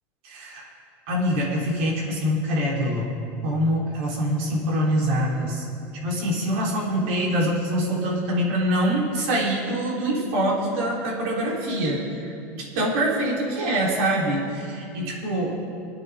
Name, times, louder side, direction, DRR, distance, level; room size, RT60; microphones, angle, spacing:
voice 1, 0.2-0.7 1.1-3.1 3.4-5.6 6.0-15.5, equal, 70° right, -4 dB, 3.6 m, -24 dB
24.5 x 9.4 x 3.6 m, 2.6 s
cardioid pair, 170°, 7 cm